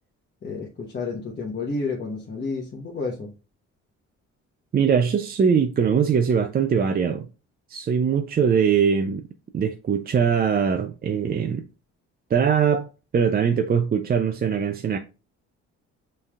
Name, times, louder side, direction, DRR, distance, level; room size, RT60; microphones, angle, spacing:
voice 1, 0.4-3.3, left 3 dB, 35° left, 1.0 m, -30 dB
voice 2, 4.7-7.3 7.7-9.2 9.5-11.6 12.3-12.9 13.1-15.0, right 7 dB, 30° right, 0.4 m, -21 dB
5.4 x 3.3 x 2.4 m
cardioid pair, 90°, 30 cm